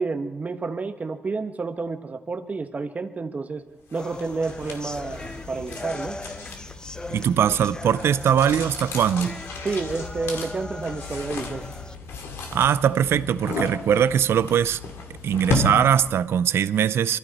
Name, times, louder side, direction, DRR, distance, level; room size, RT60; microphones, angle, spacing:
voice 1, 0.0-3.6 3.9-6.2 9.6-11.6, right 4 dB, 40° right, 1.3 m, -30 dB
sound 1, 3.9-16.3, left 3 dB, 85° left, 2.3 m, -34 dB
sound 2, 4.0-11.9, left 2 dB, 20° left, 0.6 m, -39 dB
voice 2, 7.1-9.4 12.5-14.8 15.2-17.2, right 9 dB, 80° right, 0.5 m, -21 dB
23.5 x 14.5 x 4.2 m
cardioid pair, 80°, 4 cm